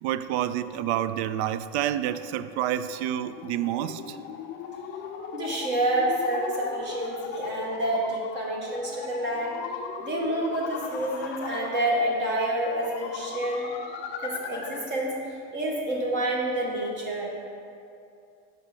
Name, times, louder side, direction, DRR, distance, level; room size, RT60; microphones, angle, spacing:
voice 1, 0.0-4.2, right 11 dB, 85° right, 14 dB, 0.5 m, -28 dB
sound 1, 2.2-15.0, left 6 dB, 35° left, 0.5 m, -38 dB
voice 2, 5.3-9.6 10.0-13.7 14.2-15.1 15.5-17.3, right 1 dB, 35° right, -1 dB, 1.5 m, -28 dB
8.9 x 5.8 x 5.0 m, 2.5 s
cardioid pair, 165°, 32 cm